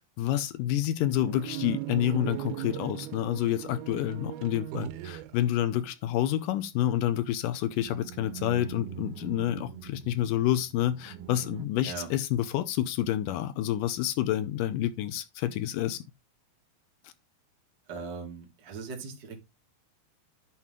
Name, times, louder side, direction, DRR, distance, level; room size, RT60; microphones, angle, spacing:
voice 1, 0.2-16.0, left 12 dB, 80° left, 2.0 m, -28 dB
sound 1, 0.8-6.0 6.9-7.0 7.7-11.7, right 14 dB, 85° right, 2.7 m, -40 dB
voice 2, 17.9-19.4, right 5 dB, 35° right, 2.1 m, -39 dB
11.0 x 4.6 x 3.7 m
omnidirectional pair, 4.4 m